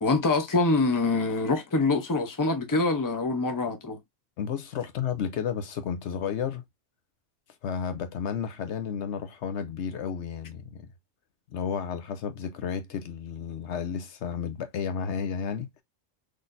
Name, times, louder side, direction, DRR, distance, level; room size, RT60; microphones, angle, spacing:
voice 1, 0.0-4.0, left 3 dB, 20° left, 0.7 m, -25 dB
voice 2, 4.4-6.6 7.6-10.9 11.5-15.7, left 7 dB, 70° left, 0.9 m, -32 dB
4.0 x 3.3 x 2.6 m
omnidirectional pair, 1.3 m